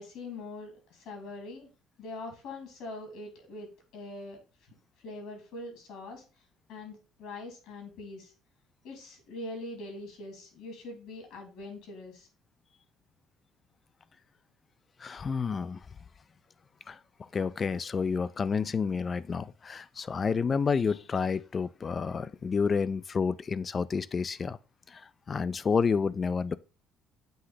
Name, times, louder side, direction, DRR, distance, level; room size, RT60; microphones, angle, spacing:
voice 1, 0.0-1.7 2.0-6.2 6.7-8.3 8.8-12.3, left 2 dB, 75° left, 2.9 m, -43 dB
voice 2, 15.0-15.8 16.9-24.6 24.9-26.6, left 5 dB, 35° left, 0.4 m, -30 dB
7.8 x 2.9 x 4.9 m
cardioid pair, 95°, 0 cm